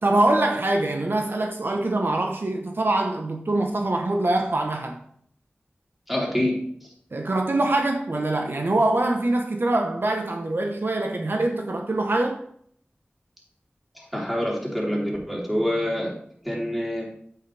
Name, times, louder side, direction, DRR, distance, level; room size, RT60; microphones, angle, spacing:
voice 1, 0.0-5.0 7.1-12.4, right 2 dB, 65° right, 1.0 m, -24 dB
voice 2, 6.1-6.6 14.0-16.1 16.4-17.0, equal, 5° right, 3.6 m, -26 dB
8.7 x 8.5 x 3.4 m
wide cardioid pair, 60°, 4 cm